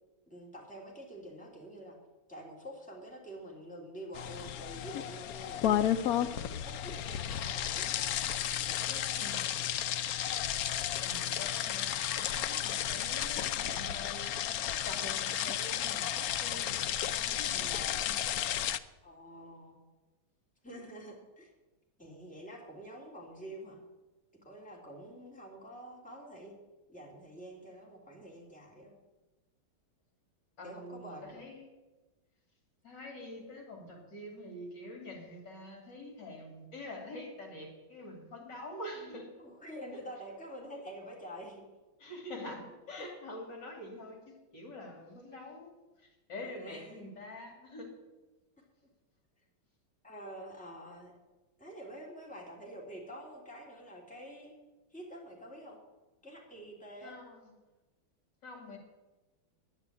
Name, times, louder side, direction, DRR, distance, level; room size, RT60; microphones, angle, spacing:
voice 1, 0.3-2.0 2.3-8.2 8.7-9.4 19.0-19.8 20.6-21.5 22.0-23.8 24.4-26.5 26.9-28.9 30.6-31.4 39.4-41.6 46.4-47.1 50.0-51.1 51.6-54.5 54.9-55.8 56.2-57.1, equal, 5° left, -2 dB, 3.1 m, -47 dB
sound 1, 4.1-18.8, left 10 dB, 80° left, 0.8 m, -33 dB
voice 2, 9.2-9.6 11.0-14.4 14.9-16.9 17.1-18.2 30.6-31.7 32.8-39.3 42.0-45.7 46.0-47.9 57.0-57.4 58.4-58.8, left 1 dB, 60° left, 1 dB, 3.2 m, -46 dB
11.0 x 9.7 x 9.9 m, 1.2 s
omnidirectional pair, 2.2 m